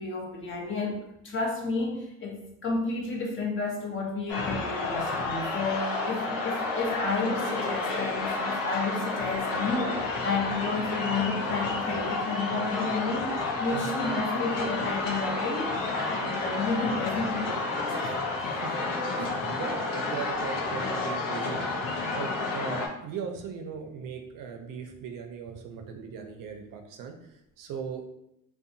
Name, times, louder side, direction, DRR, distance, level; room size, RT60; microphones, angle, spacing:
voice 1, 0.0-18.3 19.4-19.8, left 3 dB, 35° left, -1 dB, 0.7 m, -32 dB
sound 1, 4.3-22.9, left 3 dB, 75° left, 0.6 m, -30 dB
voice 2, 18.4-18.9 19.1-28.1, right 6 dB, 70° right, 5 dB, 0.5 m, -39 dB
2.7 x 2.2 x 2.6 m, 0.81 s
cardioid pair, 95°, 34 cm